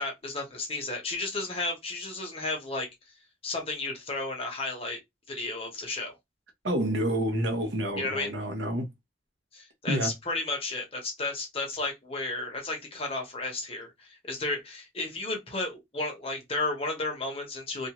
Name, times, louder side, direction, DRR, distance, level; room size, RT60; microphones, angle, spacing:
voice 1, 0.0-2.9 3.4-5.0 5.3-6.1 8.0-8.3 9.5-17.9, left 2 dB, 30° left, 0.9 m, -33 dB
voice 2, 6.6-8.9 9.9-10.1, right 1 dB, 70° right, 0.8 m, -28 dB
2.5 x 2.3 x 2.9 m
head